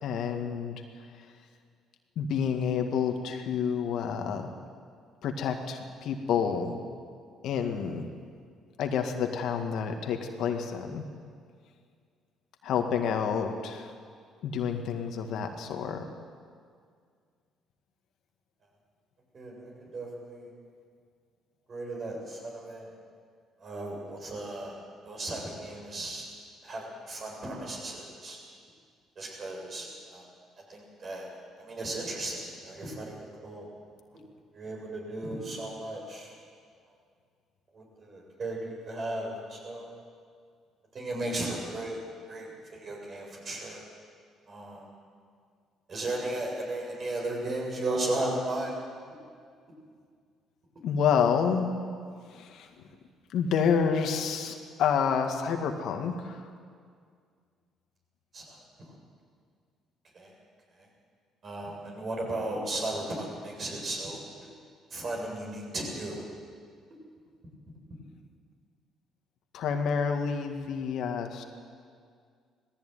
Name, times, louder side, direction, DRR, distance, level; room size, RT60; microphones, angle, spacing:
voice 1, 0.0-0.8 2.2-4.5 5.2-6.8 7.4-8.1 8.8-11.0 12.6-13.9 14.4-16.1 50.8-51.7 52.3-52.7 53.3-56.4 69.5-71.4, left 7 dB, 70° left, 4 dB, 2.0 m, -29 dB
voice 2, 19.3-20.5 21.7-22.9 23.6-24.8 25.0-26.3 26.6-28.4 29.2-30.2 30.7-31.3 31.6-33.7 34.1-34.2 34.5-36.3 37.7-39.9 40.9-42.0 42.3-43.8 44.5-44.9 45.9-48.8 58.3-58.6 60.1-60.3 61.4-64.2 64.9-66.2, right 2 dB, 45° right, -1 dB, 7.3 m, -35 dB
18.5 x 15.0 x 9.4 m, 2.1 s
supercardioid pair, 70°, 0 cm